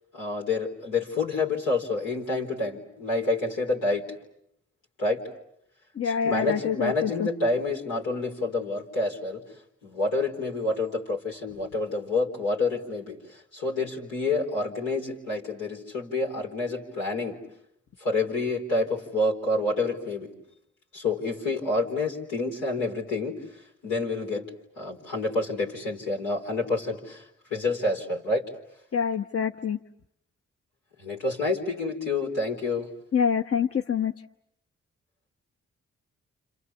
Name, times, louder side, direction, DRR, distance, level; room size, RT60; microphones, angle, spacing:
voice 1, 0.1-4.0 5.0-5.2 6.0-9.4 9.8-17.4 18.0-20.3 20.9-23.4 23.8-24.4 24.8-27.2 27.5-28.4 31.0-32.9, left 2 dB, 90° left, -2 dB, 4.4 m, -28 dB
voice 2, 5.9-7.3 28.9-29.8 33.1-34.1, left 7 dB, 45° left, 3 dB, 1.1 m, -26 dB
29.5 x 28.0 x 7.1 m, 0.76 s
supercardioid pair, 45°, 32 cm